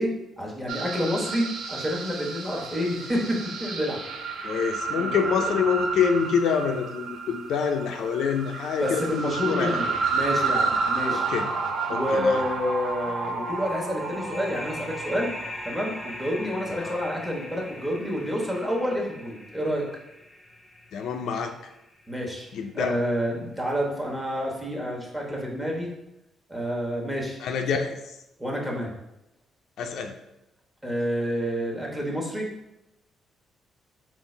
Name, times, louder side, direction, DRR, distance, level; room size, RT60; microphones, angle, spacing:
voice 1, 0.0-4.0 5.0-5.4 8.8-11.3 11.9-15.3 15.6-19.8 22.1-22.5 22.7-25.9 26.5-27.4 27.7-27.8 28.4-28.9 30.8-32.5, equal, 10° right, -2 dB, 1.2 m, -28 dB
sound 1, 0.7-17.5, right 4 dB, 75° right, 0.5 m, -31 dB
voice 2, 4.4-9.8 11.1-11.5 11.9-12.4 16.8-17.0 20.9-21.7 22.5-23.0 27.4-27.9 29.8-30.2, left 6 dB, 75° left, 5 dB, 0.4 m, -26 dB
sound 2, 13.5-22.8, left 1 dB, 10° left, 0.6 m, -41 dB
3.8 x 2.4 x 4.4 m, 0.89 s
cardioid pair, 90°, 0 cm